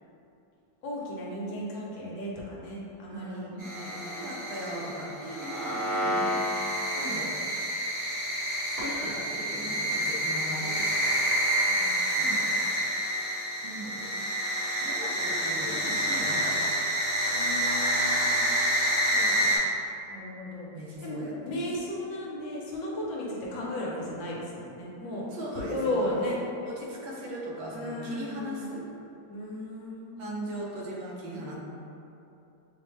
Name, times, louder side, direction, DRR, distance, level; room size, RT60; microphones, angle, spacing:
voice 1, 0.8-3.5 3.7-4.3 11.8-12.3 17.2-18.4 20.1-20.7 21.0-21.2 21.4-25.2 25.7-26.4 27.7-28.7 29.3-30.5, left 1 dB, 75° left, -4 dB, 1.3 m, -35 dB
voice 2, 3.1-6.4 6.9-7.3 8.6-11.2 12.2-12.6 13.6-14.1 14.8-16.9 19.1-19.6 20.7-21.6 25.3-26.1 26.6-28.8 30.2-31.6, right 1 dB, 75° right, -4 dB, 1.5 m, -39 dB
sound 1, 3.6-19.6, equal, 45° right, 1.1 m, -28 dB
6.2 x 2.1 x 3.1 m, 2.8 s
omnidirectional pair, 2.2 m